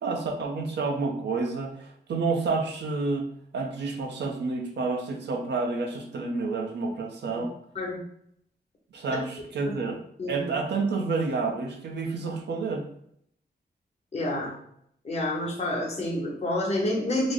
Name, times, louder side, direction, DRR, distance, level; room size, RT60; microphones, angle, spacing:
voice 1, 0.0-3.3 3.5-7.5 8.9-10.0 10.3-12.9, right 3 dB, 90° right, 2 dB, 0.6 m, -29 dB
voice 2, 10.2-10.5 14.1-14.5 15.0-17.3, left 1 dB, 40° left, -2 dB, 0.9 m, -28 dB
3.2 x 2.0 x 3.7 m, 0.70 s
wide cardioid pair, 165°, 17 cm